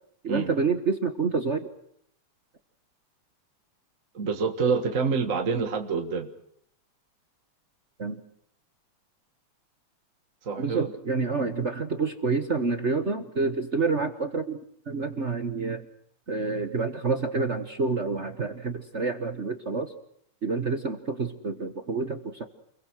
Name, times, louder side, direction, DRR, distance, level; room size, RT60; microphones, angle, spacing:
voice 1, 0.2-1.7 8.0-8.2 10.6-14.6 14.9-15.8 16.3-19.9 20.4-22.5, right 4 dB, 50° right, 8 dB, 0.8 m, -28 dB
voice 2, 4.1-6.3 10.4-10.9 11.4-11.5, right 5 dB, 35° right, 5 dB, 1.4 m, -27 dB
29.5 x 22.5 x 6.3 m, 0.69 s
omnidirectional pair, 3.4 m